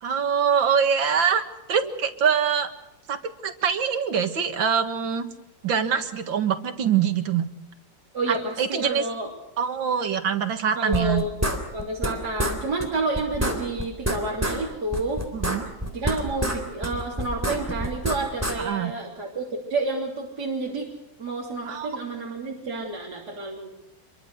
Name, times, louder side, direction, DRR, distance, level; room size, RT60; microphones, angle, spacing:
voice 1, 0.0-2.7 3.1-5.3 5.6-7.5 8.3-9.0 9.6-11.2 15.3-15.7 18.6-18.9 21.7-21.9, right 7 dB, 85° right, 8 dB, 2.4 m, -24 dB
voice 2, 8.1-9.3 10.8-15.2 15.9-20.9 21.2-23.7, right 2 dB, 55° right, -3 dB, 3.8 m, -30 dB
sound 1, 10.9-12.1 12.4-12.6 12.8-12.9 13.1-14.6 14.9-16.6 16.8-18.6, equal, 5° right, 3.5 m, -27 dB
26.5 x 23.0 x 6.5 m, 0.88 s
omnidirectional pair, 2.0 m